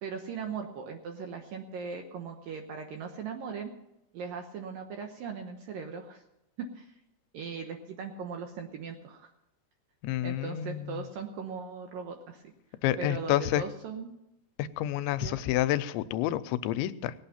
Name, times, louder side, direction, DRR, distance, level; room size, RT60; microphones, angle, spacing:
voice 1, 0.0-3.7 4.1-6.2 6.6-6.9 7.3-9.3 10.2-12.5 13.0-14.1 15.2-15.4, right 5 dB, 75° right, 4 dB, 2.2 m, -39 dB
voice 2, 10.0-11.1 12.8-13.6 14.6-17.1, left 13 dB, 90° left, 13 dB, 3.0 m, -29 dB
18.5 x 8.9 x 5.7 m, 0.88 s
omnidirectional pair, 5.2 m